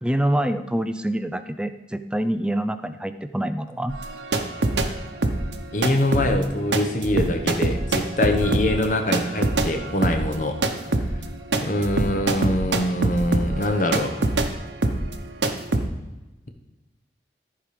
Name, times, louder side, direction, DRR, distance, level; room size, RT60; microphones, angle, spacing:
voice 1, 0.0-4.0, right 1 dB, 5° right, 10 dB, 0.4 m, -26 dB
sound 1, 3.9-4.9 5.2-14.5 14.8-15.2 15.4-15.9, right 2 dB, 85° right, 0.9 m, -24 dB
voice 2, 5.7-10.8 11.6-14.3, left 1 dB, 45° left, 5 dB, 1.1 m, -24 dB
14.0 x 4.9 x 5.1 m, 1.1 s
head